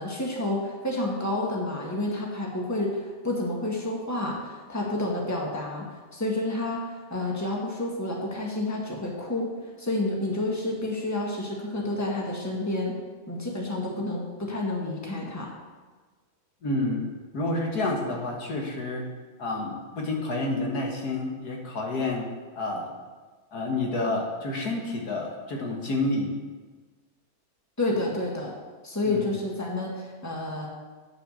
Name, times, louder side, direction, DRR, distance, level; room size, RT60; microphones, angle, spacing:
voice 1, 0.0-9.5 9.8-12.9 13.3-15.5 27.8-28.5 28.8-30.7, left 2 dB, 10° left, -2 dB, 1.7 m, -29 dB
voice 2, 16.6-19.0 19.4-22.3 22.6-22.9 23.5-26.3 29.0-29.3, left 2 dB, 85° left, 0 dB, 2.2 m, -29 dB
9.0 x 6.9 x 6.5 m, 1.4 s
omnidirectional pair, 1.6 m